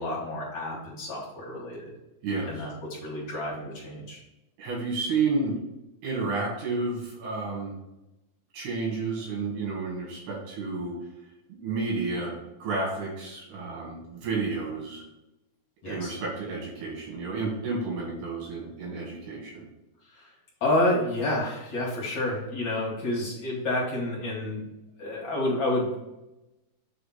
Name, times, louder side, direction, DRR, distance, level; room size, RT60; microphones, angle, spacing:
voice 1, 0.0-1.9 2.5-4.2 15.8-16.2 20.1-20.3 20.6-24.7 25.0-26.0, left 1 dB, 55° left, -4 dB, 2.4 m, -29 dB
voice 2, 2.2-2.7 4.6-5.5 6.0-7.8 8.5-10.9 11.5-15.0 15.9-19.6, right 3 dB, 90° right, -4 dB, 3.8 m, -31 dB
7.6 x 3.4 x 5.8 m, 0.95 s
omnidirectional pair, 4.4 m